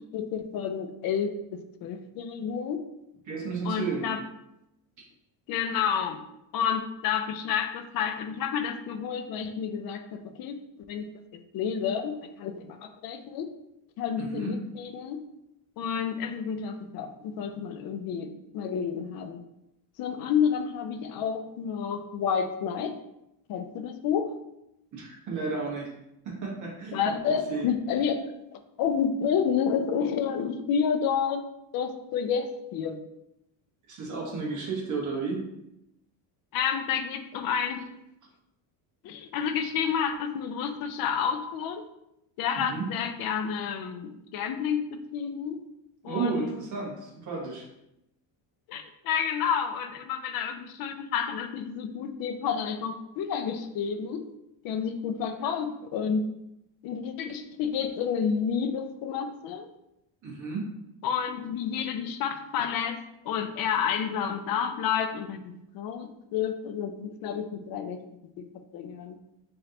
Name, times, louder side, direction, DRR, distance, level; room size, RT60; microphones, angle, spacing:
voice 1, 0.1-1.3 1.8-2.8 3.6-4.2 5.5-6.2 6.5-10.6 10.9-11.1 11.5-13.5 14.0-15.2 15.8-19.4 20.0-22.9 23.5-24.3 26.9-31.4 31.7-33.0 36.5-37.8 39.0-41.8 42.4-45.6 46.0-46.6 48.7-54.2 54.6-56.2 56.8-59.7 61.0-63.0 63.2-68.0 68.4-68.5 68.7-69.2, left 7 dB, 50° left, 8 dB, 0.4 m, -30 dB
voice 2, 3.2-4.1 14.2-14.5 24.9-25.9 26.2-27.0 27.3-27.7 33.9-35.4 42.6-42.9 46.0-47.6 60.2-60.7, right 4 dB, 40° right, -3 dB, 1.2 m, -32 dB
3.8 x 3.2 x 2.8 m, 0.85 s
cardioid pair, 135°, 48 cm